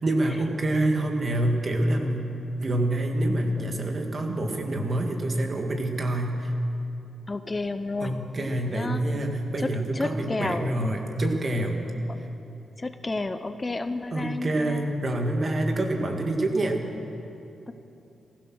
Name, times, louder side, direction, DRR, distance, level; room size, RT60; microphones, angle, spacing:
voice 1, 0.0-6.5 8.0-11.8 14.1-16.8, right 1 dB, 45° right, 3 dB, 2.1 m, -26 dB
voice 2, 7.3-8.1 8.6-9.0 9.6-9.7 9.9-10.7 12.8-14.9, left 3 dB, 25° left, 9 dB, 0.7 m, -31 dB
15.5 x 15.0 x 6.3 m, 2.9 s
cardioid pair, 70°, 0 cm